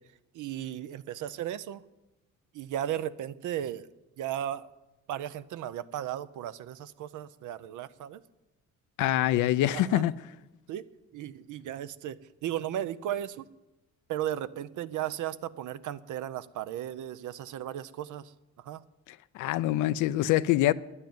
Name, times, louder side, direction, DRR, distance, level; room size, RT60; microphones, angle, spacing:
voice 1, 0.4-1.8 2.6-3.8 4.2-4.6 5.1-8.2 9.7-10.0 10.7-10.8 11.1-12.2 12.4-13.4 14.1-18.2 18.7-18.8, right 11 dB, 80° right, 0.7 m, -35 dB
voice 2, 9.0-10.1 19.3-20.7, left 14 dB, 90° left, 0.5 m, -25 dB
10.5 x 9.8 x 9.3 m
cardioid pair, 90°, 30 cm